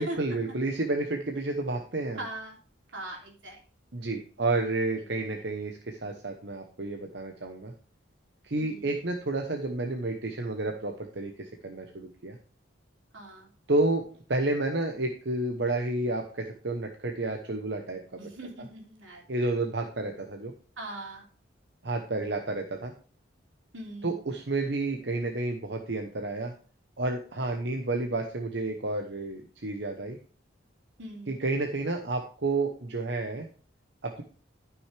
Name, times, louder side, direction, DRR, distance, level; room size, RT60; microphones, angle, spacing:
voice 1, 0.0-2.2 3.9-7.7 8.4-12.4 13.7-14.0 14.3-18.3 18.6-18.7 19.3-20.5 21.8-22.9 24.0-26.5 27.0-30.2 31.3-33.5 34.0-34.2, right 2 dB, 60° right, 3 dB, 1.0 m, -30 dB
voice 2, 2.2-2.5 2.9-3.6 8.6-8.9 13.1-13.5 18.2-19.2 20.8-21.2 23.7-24.1 31.0-31.3, right 1 dB, 85° right, 0 dB, 3.2 m, -40 dB
13.0 x 6.1 x 3.4 m, 0.41 s
head